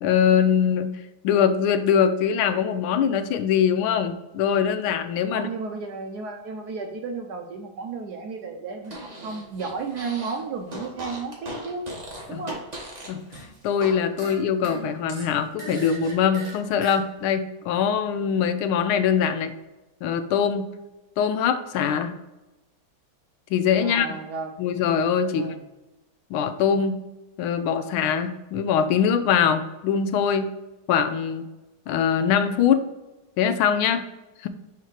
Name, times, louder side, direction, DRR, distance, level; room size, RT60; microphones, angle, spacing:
voice 1, 0.0-0.9 1.2-5.5 12.3-12.4 13.1-13.2 13.6-19.5 20.0-20.7 21.2-22.1 23.5-24.1 24.6-25.5 26.3-27.0 27.4-30.5 30.9-31.4 31.9-32.8 33.4-34.0 34.4-34.5, left 7 dB, 85° left, 10 dB, 1.4 m, -22 dB
voice 2, 5.3-11.8 12.3-12.6 14.2-14.3 14.6-14.7 23.8-24.5 25.3-25.6, right 4 dB, 70° right, 3 dB, 0.9 m, -33 dB
Fart, 8.8-10.4 10.7-13.9 14.2-17.0, right 1 dB, 25° right, 1.0 m, -38 dB
5.8 x 3.7 x 4.6 m, 1.0 s
omnidirectional pair, 2.3 m